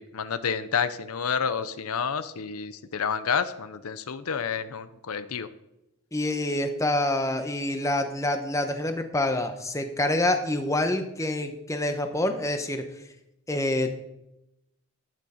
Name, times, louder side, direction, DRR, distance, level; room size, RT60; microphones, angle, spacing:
voice 1, 0.0-5.5, left 6 dB, 80° left, 12 dB, 0.6 m, -29 dB
voice 2, 6.1-12.9 13.5-14.0, left 1 dB, 15° left, 6 dB, 0.9 m, -27 dB
12.0 x 9.2 x 4.3 m, 0.88 s
head